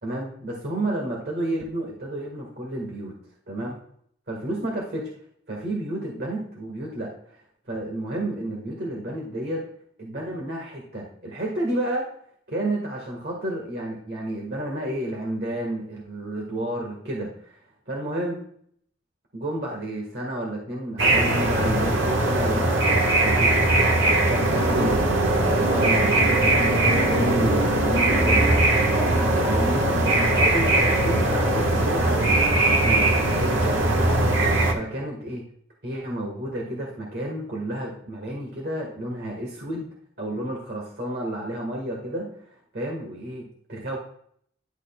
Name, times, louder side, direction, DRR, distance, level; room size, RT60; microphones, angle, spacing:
voice 1, 0.0-3.1 3.5-3.8 4.3-5.0 5.5-7.4 7.7-9.6 10.0-12.1 12.5-18.4 19.3-23.5 24.1-28.7 29.4-29.9 30.2-35.4 35.8-39.9 40.2-44.0, right 1 dB, 55° right, -1 dB, 1.5 m, -31 dB
sound 1, 21.0-34.7, right 2 dB, 85° right, 1.3 m, -20 dB
11.0 x 6.3 x 2.2 m, 0.63 s
head